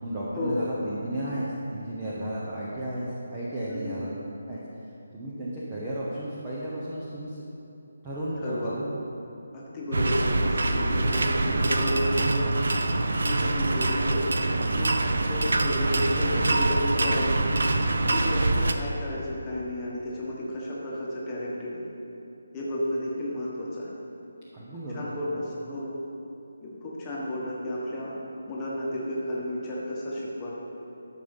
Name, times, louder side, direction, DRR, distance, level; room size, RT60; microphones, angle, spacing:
voice 1, 0.0-4.1 4.5-4.7 5.1-7.4 8.0-8.9 24.5-25.1, right 1 dB, 15° right, -7 dB, 1.0 m, -33 dB
voice 2, 3.7-4.0 8.4-8.7 9.5-12.5 13.2-15.0 15.3-17.5 18.1-21.8 22.5-23.9 24.9-26.0 26.6-28.2 28.5-30.5, left 1 dB, 10° left, -6 dB, 1.4 m, -32 dB
sound 1, 9.9-18.7, right 2 dB, 65° right, 0.7 m, -25 dB
12.5 x 6.7 x 5.4 m, 2.8 s
hypercardioid pair, 175°, 0 cm